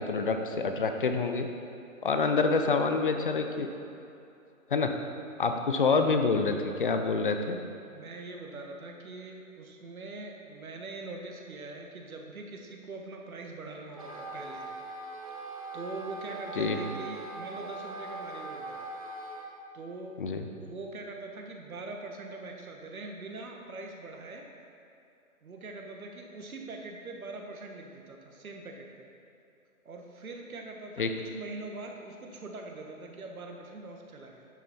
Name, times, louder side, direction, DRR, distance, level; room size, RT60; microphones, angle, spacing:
voice 1, 0.0-1.5 2.0-3.7 4.7-4.9 5.4-7.6 16.6-16.8 20.2-20.4 31.0-31.1, left 4 dB, 40° left, 6 dB, 0.6 m, -27 dB
voice 2, 7.9-14.7 15.3-15.4 15.7-18.8 19.7-24.5 25.4-29.1 29.8-34.5, right 3 dB, 75° right, 2 dB, 1.6 m, -43 dB
Wind instrument woodwind instrument, 13.9-19.5, right 2 dB, 25° right, 0.5 m, -41 dB
10.5 x 6.3 x 4.2 m, 2.8 s
hypercardioid pair, 160°, 43 cm